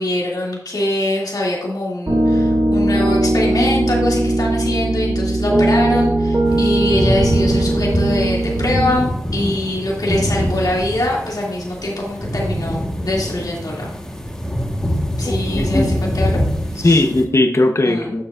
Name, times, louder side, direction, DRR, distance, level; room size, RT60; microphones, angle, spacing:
voice 1, 0.0-13.9 15.2-16.4 16.7-17.0 17.8-18.1, left 1 dB, 65° left, -4 dB, 2.4 m, -23 dB
Piano, 2.1-8.9, right 1 dB, 40° right, 2.7 m, -18 dB
sound 1, 6.4-17.2, equal, 10° left, 1.3 m, -23 dB
voice 2, 15.2-15.9 16.8-18.2, left 2 dB, 40° left, 5 dB, 0.9 m, -17 dB
9.0 x 6.8 x 2.5 m, 0.74 s
cardioid pair, 50°, 7 cm